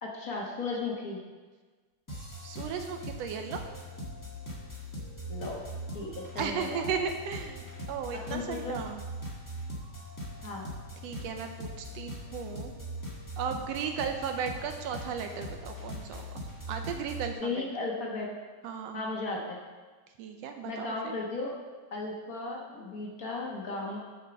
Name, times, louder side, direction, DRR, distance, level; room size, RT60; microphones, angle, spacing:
voice 1, 0.0-1.2 5.3-5.7 5.9-6.8 8.3-8.8 10.4-10.7 17.4-18.3 18.9-19.6 20.6-21.5 21.9-24.0, left 3 dB, 70° left, -2 dB, 0.8 m, -35 dB
sound 1, 2.1-17.3, equal, 30° left, 0.3 m, -41 dB
voice 2, 2.4-3.6 6.4-9.0 11.0-12.7 13.4-17.7 18.6-19.0 20.2-21.2, right 6 dB, 75° right, 5 dB, 1.6 m, -35 dB
7.3 x 6.3 x 6.9 m, 1.4 s
omnidirectional pair, 3.4 m